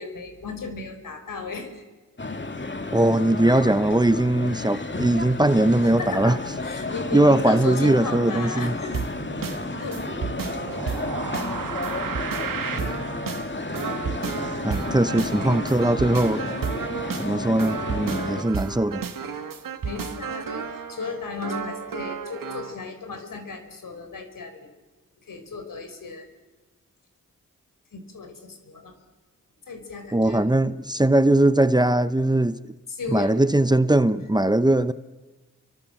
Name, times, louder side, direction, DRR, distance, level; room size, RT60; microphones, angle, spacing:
voice 1, 0.0-1.8 6.0-9.0 9.4-9.5 9.8-10.1 19.8-24.7 25.2-26.3 27.9-28.9 29.7-30.4 32.9-33.3, left 4 dB, 75° left, 4.8 m, -35 dB
sound 1, 2.2-18.4, left 2 dB, 35° left, 2.3 m, -32 dB
voice 2, 2.9-6.4 7.1-8.7 14.6-16.6 17.2-19.0 30.1-32.6 33.1-34.9, right 1 dB, 10° right, 1.0 m, -20 dB
sound 2, 8.9-22.8, right 6 dB, 80° right, 2.2 m, -32 dB
29.0 x 24.0 x 7.9 m
cardioid pair, 55°, 33 cm